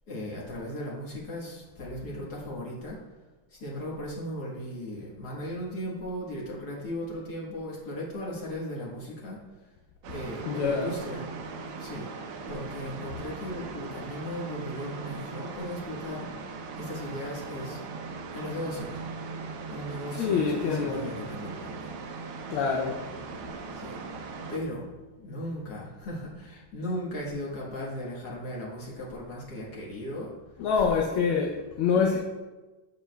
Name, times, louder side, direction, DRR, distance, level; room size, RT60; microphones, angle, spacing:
voice 1, 0.1-3.0 3.5-9.4 10.1-11.3 11.8-12.1 12.5-16.3 16.8-17.8 18.3-19.0 19.7-21.9 23.7-24.0 24.4-24.9 25.2-30.3 30.7-30.9, equal, 50° left, -5 dB, 1.8 m, -37 dB
sound 1, 10.0-24.6, right 4 dB, 90° right, 1.6 m, -39 dB
voice 2, 10.4-10.9 20.2-21.1 22.5-23.1 30.6-32.2, left 5 dB, 85° left, 0 dB, 1.5 m, -26 dB
7.9 x 7.4 x 2.2 m, 1.2 s
omnidirectional pair, 2.3 m